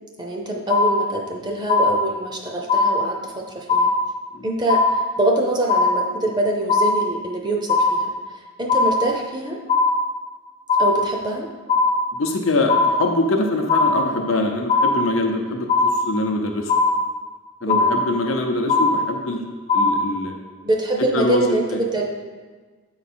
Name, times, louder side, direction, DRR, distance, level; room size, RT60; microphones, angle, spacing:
voice 1, 0.2-3.9 4.4-9.6 10.8-11.5 17.7-18.0 20.6-22.0, right 2 dB, 20° right, 0 dB, 0.6 m, -24 dB
sound 1, 0.7-1.4 1.7-2.4 2.7-3.4 3.7-4.4 4.7-5.4 5.7-6.4 6.7-7.4 7.7-8.4 8.7-9.4 9.7-10.4 10.7-11.4 11.7-12.4 12.7-13.4 13.7-14.4 14.7-15.4 15.7-16.4 16.7-17.4 17.7-18.4 18.7-19.4 19.7-20.4, left 3 dB, 30° left, 0.5 m, -20 dB
voice 2, 12.1-16.7 17.6-19.4 19.7-20.4 21.1-21.6, left 2 dB, 70° left, 2 dB, 0.7 m, -23 dB
8.1 x 4.7 x 4.3 m, 1.4 s
head